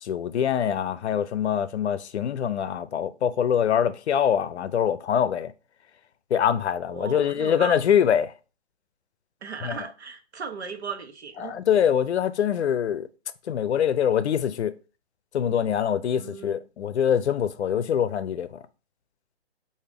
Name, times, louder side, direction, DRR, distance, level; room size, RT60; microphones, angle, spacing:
voice 1, 0.0-5.5 6.3-8.3 9.6-9.8 11.4-13.1 13.5-14.7 15.3-18.6, left 9 dB, 85° left, 0.5 m, -24 dB
voice 2, 6.9-7.7 9.4-11.6 16.2-16.6, right 5 dB, 80° right, 1.0 m, -36 dB
4.9 x 2.6 x 3.4 m
hypercardioid pair, 180°, 32 cm